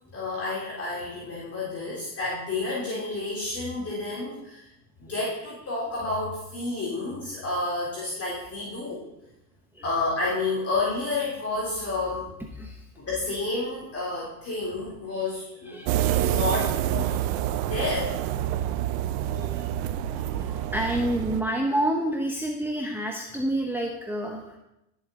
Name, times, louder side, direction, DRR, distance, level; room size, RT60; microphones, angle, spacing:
voice 1, 0.1-4.6 5.0-9.1 9.8-12.3 13.0-15.9 16.2-17.2 17.6-18.2, left 2 dB, 30° left, -6 dB, 3.6 m, -30 dB
voice 2, 12.5-12.9 15.7-16.4 17.3-17.4 18.6-18.7 19.2-19.7 20.1-24.6, right 1 dB, 5° right, 1 dB, 1.0 m, -29 dB
sound 1, 15.9-21.4, right 12 dB, 60° right, 0.9 m, -27 dB
18.0 x 7.3 x 3.8 m, 0.86 s
hypercardioid pair, 100°, 49 cm